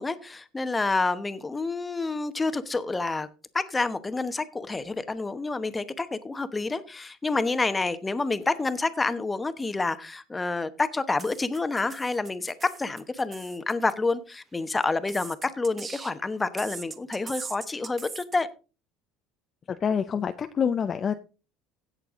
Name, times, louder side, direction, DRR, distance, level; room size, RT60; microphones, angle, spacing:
voice 1, 0.0-3.3 3.5-18.5, left 3 dB, 15° left, 1.0 m, -28 dB
sound 1, 11.2-13.9 14.8-16.2 16.6-18.4, right 5 dB, 25° right, 1.1 m, -41 dB
voice 2, 19.7-21.1, left 7 dB, 30° left, 0.6 m, -26 dB
16.5 x 6.7 x 3.7 m
cardioid pair, 125°, 0 cm